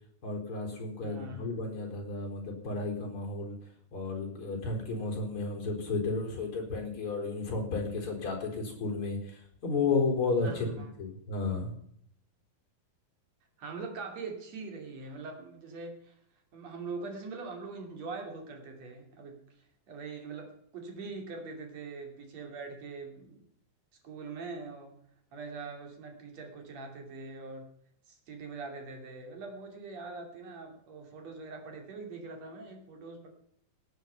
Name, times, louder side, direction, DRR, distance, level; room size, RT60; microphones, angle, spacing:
voice 1, 0.2-3.6 3.9-11.7, left 3 dB, 35° left, 1 dB, 4.7 m, -33 dB
voice 2, 1.0-1.5 10.4-10.9 13.6-16.2 16.5-23.4 24.0-25.0 25.3-27.7 28.1-33.3, right 4 dB, 50° right, 3 dB, 3.7 m, -43 dB
18.0 x 9.2 x 5.6 m, 0.69 s
omnidirectional pair, 4.1 m